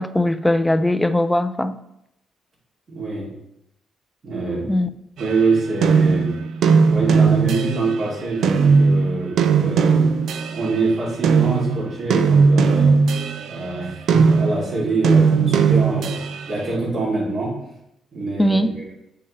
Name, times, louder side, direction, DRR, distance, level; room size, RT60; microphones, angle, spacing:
voice 1, 0.0-1.8 4.7-4.9 18.4-18.7, left 1 dB, 5° left, 11 dB, 0.4 m, -19 dB
voice 2, 2.9-3.3 4.2-4.7 5.2-6.3 6.8-10.1 10.5-13.0 13.4-16.2 16.5-17.5 18.1-18.8, right 3 dB, 50° right, -4 dB, 2.8 m, -25 dB
sound 1, 5.2-8.0 8.4-10.8 11.2-16.5, right 5 dB, 70° right, 0.4 m, -18 dB
7.0 x 5.6 x 3.3 m, 0.82 s
cardioid pair, 90°, 0 cm